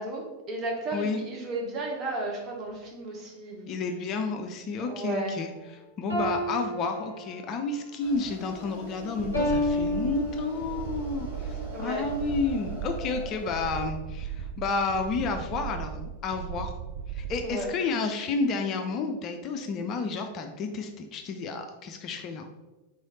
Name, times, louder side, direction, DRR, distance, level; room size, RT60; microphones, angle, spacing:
voice 1, 0.0-3.7 4.8-5.4 11.7-12.0 17.4-17.7, right 2 dB, 30° right, -1 dB, 1.1 m, -34 dB
voice 2, 3.7-5.5 6.0-16.7 17.1-22.5, left 4 dB, 35° left, 5 dB, 0.4 m, -31 dB
sound 1, 6.1-7.7 9.3-10.8, left 1 dB, 90° right, 1.5 m, -30 dB
sound 2, 8.0-13.8, equal, 75° right, 1.4 m, -42 dB
sound 3, 9.2-17.6, right 8 dB, 50° right, 0.4 m, -37 dB
3.9 x 3.2 x 4.0 m, 1.1 s
figure-of-eight pair, 90°, 0 cm